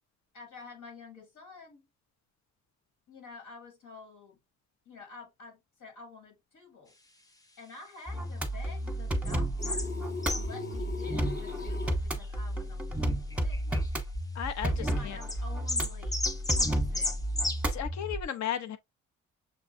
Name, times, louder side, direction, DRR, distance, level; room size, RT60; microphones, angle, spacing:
voice 1, 0.3-1.9 3.1-4.4 4.9-6.9 7.6-9.9 10.3-13.6 14.7-16.2 16.5-17.1, left 4 dB, 90° left, 2.4 m, -49 dB
sound 1, 8.1-18.2, right 1 dB, 5° right, 0.9 m, -32 dB
sound 2, 9.2-9.4 9.6-9.9 10.2-10.6 11.0-11.8 12.2-12.3 13.3-14.0 15.2-15.4 15.7-17.6, left 2 dB, 10° left, 0.5 m, -32 dB
sound 3, 9.6-12.0, left 5 dB, 35° left, 0.9 m, -39 dB
voice 2, 14.3-15.2 17.7-18.8, left 10 dB, 65° left, 0.8 m, -35 dB
6.6 x 2.3 x 2.5 m
cardioid pair, 90°, 30 cm